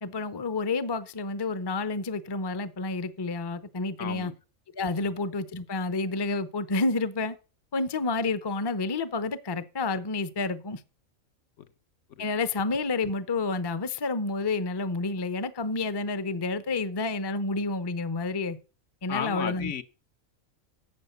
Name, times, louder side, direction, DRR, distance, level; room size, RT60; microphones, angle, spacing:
voice 1, 0.0-4.3 4.8-7.4 7.7-10.8 12.2-18.6 19.0-19.7, left 3 dB, 25° left, 0.6 m, -29 dB
voice 2, 4.0-4.3 5.0-5.1 12.2-12.3 19.1-19.8, left 8 dB, 65° left, 1.2 m, -34 dB
11.5 x 7.8 x 6.8 m
omnidirectional pair, 1.4 m